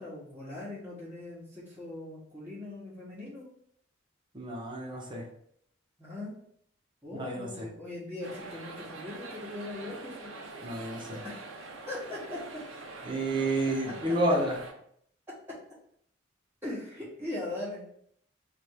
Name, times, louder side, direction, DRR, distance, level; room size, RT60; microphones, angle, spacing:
voice 1, 0.0-3.5 6.0-6.3 7.0-10.3 11.2-11.5 11.9-12.4 16.6-17.8, left 2 dB, 10° right, -11 dB, 1.2 m, -40 dB
voice 2, 4.3-5.2 7.1-7.6 10.6-11.2 13.0-14.6, right 1 dB, 25° right, -1 dB, 0.9 m, -30 dB
sound 1, 8.2-14.7, right 3 dB, 85° right, 0.8 m, -44 dB
3.4 x 2.6 x 4.5 m, 0.67 s
head